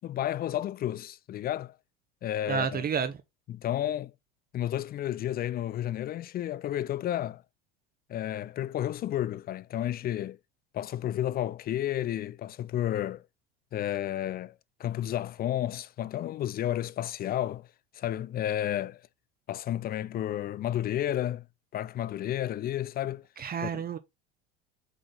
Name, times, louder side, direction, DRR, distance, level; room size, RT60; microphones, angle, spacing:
voice 1, 0.0-1.8 2.2-2.8 3.5-4.1 4.5-7.4 8.1-10.4 10.7-13.2 13.7-17.7 17.9-19.0 19.5-21.5 21.7-23.2 23.6-23.8, left 12 dB, 30° left, 0.5 m, -31 dB
voice 2, 2.5-3.2 23.4-24.0, right 7 dB, 30° right, 0.9 m, -30 dB
8.1 x 3.8 x 3.8 m
hypercardioid pair, 75°, 32 cm